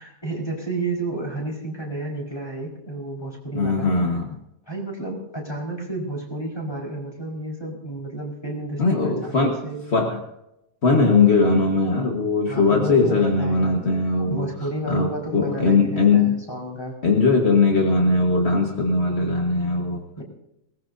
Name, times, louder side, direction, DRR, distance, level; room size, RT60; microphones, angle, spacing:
voice 1, 0.0-3.9 4.7-9.8 12.5-17.0 20.2-20.3, right 2 dB, 10° left, -1 dB, 4.6 m, -31 dB
voice 2, 3.5-4.3 8.8-9.6 9.9-10.2 10.8-14.5 14.9-16.4 17.0-20.0, left 3 dB, 40° left, 1 dB, 0.9 m, -20 dB
22.0 x 19.5 x 2.7 m, 0.83 s
omnidirectional pair, 3.5 m